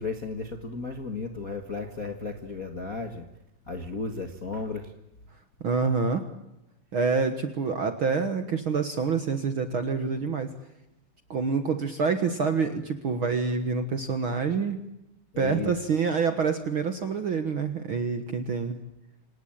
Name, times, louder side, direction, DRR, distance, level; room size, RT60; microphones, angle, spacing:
voice 1, 0.0-3.2 3.7-4.8 15.3-15.7, left 4 dB, 40° left, 5 dB, 1.2 m, -34 dB
voice 2, 5.6-6.2 6.9-10.5 11.3-14.8 15.4-18.8, right 5 dB, 50° right, 9 dB, 1.6 m, -27 dB
27.0 x 19.0 x 8.9 m, 0.88 s
omnidirectional pair, 4.0 m